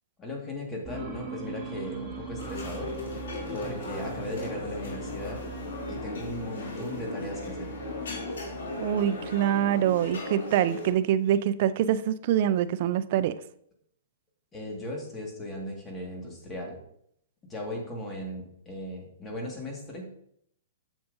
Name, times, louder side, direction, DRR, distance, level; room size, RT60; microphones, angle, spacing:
voice 1, 0.2-3.2 3.5-5.4 5.9-7.7 14.5-16.8 17.5-20.1, left 1 dB, 15° left, 0 dB, 1.7 m, -37 dB
sound 1, 0.9-10.5, right 4 dB, 10° right, 2.0 m, -42 dB
sound 2, 2.4-10.9, left 2 dB, 85° left, 2.7 m, -37 dB
voice 2, 8.8-13.4, right 10 dB, 50° right, 14 dB, 0.4 m, -25 dB
7.3 x 7.0 x 2.6 m, 0.71 s
hypercardioid pair, 140°, 0 cm